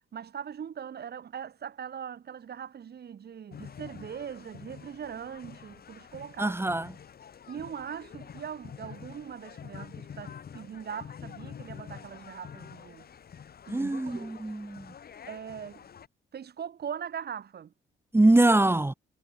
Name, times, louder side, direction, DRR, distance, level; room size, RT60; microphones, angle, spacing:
voice 1, 0.1-6.6 7.5-13.1 13.7-14.4 15.3-15.8 16.3-17.7, right 8 dB, 55° right, 4.8 m, -40 dB
sound 1, 3.5-16.1, left 7 dB, 50° left, 3.3 m, -47 dB
voice 2, 6.4-6.9 13.7-14.9 18.1-18.9, right 2 dB, 10° right, 1.9 m, -23 dB
cardioid pair, 90°, 20 cm